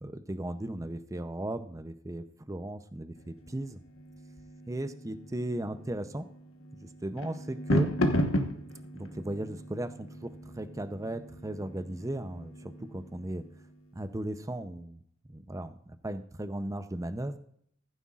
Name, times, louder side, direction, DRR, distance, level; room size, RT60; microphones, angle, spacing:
voice 1, 0.0-3.8 4.7-6.3 7.0-7.9 8.9-13.4 13.9-15.0 15.3-17.4, right 1 dB, 15° right, 12 dB, 0.6 m, -36 dB
sound 1, 3.1-13.9, left 1 dB, 75° left, 1.3 m, -35 dB
15.0 x 9.5 x 2.4 m, 0.67 s
head